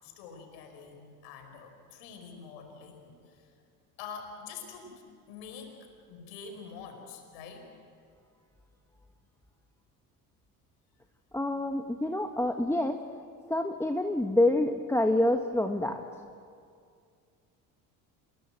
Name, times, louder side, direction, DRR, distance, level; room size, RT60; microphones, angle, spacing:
voice 1, 0.0-3.5 4.0-5.0 5.3-5.8 6.1-7.6, left 5 dB, 70° left, 4 dB, 5.2 m, -46 dB
voice 2, 11.3-13.0 13.5-16.0, left 1 dB, 5° left, 4 dB, 1.4 m, -27 dB
27.5 x 21.5 x 7.8 m, 2.3 s
hypercardioid pair, 70°, 46 cm